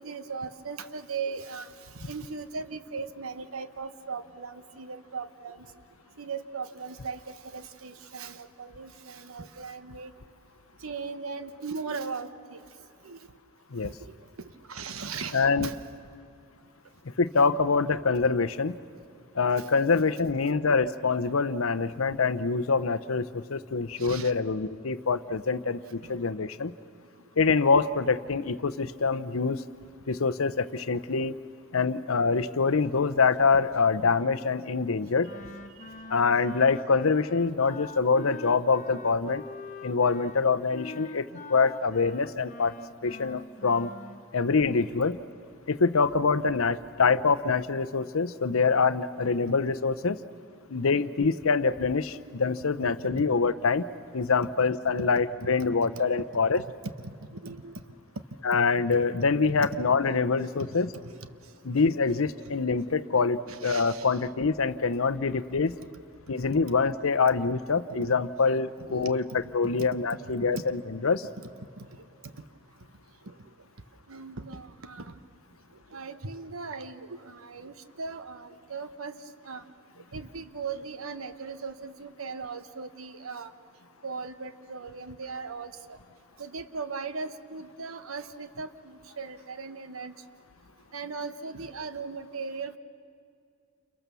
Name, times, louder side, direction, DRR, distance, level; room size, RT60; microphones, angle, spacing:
voice 1, 0.0-5.6 6.2-10.1 10.8-12.6 13.0-13.2 13.8-15.8 19.6-19.9 24.0-24.3 26.0-26.2 52.8-52.9 53.2-53.3 53.9-54.0 55.1-55.9 56.6-57.8 58.5-58.6 58.9-59.1 59.5-59.7 60.6-60.8 61.0-61.3 63.5-64.3 65.3-65.4 67.7-68.1 68.8-69.2 69.8-70.0 70.5-70.6 71.8-71.9 73.3-73.4 74.1-75.1 75.9-79.6 80.1-83.5 84.0-86.0 86.4-90.1 90.9-92.8, right 4 dB, 85° right, 11 dB, 1.1 m, -38 dB
voice 2, 15.3-15.7 17.2-18.8 19.4-26.7 27.4-29.6 30.1-31.3 31.7-35.3 36.1-39.4 39.8-41.2 41.5-42.8 43.0-43.9 44.3-45.2 45.7-50.2 50.7-53.8 54.1-56.6 58.4-60.9 61.6-65.8 66.3-71.3, left 4 dB, 80° left, 13 dB, 0.8 m, -25 dB
Wind instrument woodwind instrument, 35.2-44.2, left 3 dB, 35° left, 1.0 m, -44 dB
29.0 x 28.5 x 7.0 m, 2.4 s
head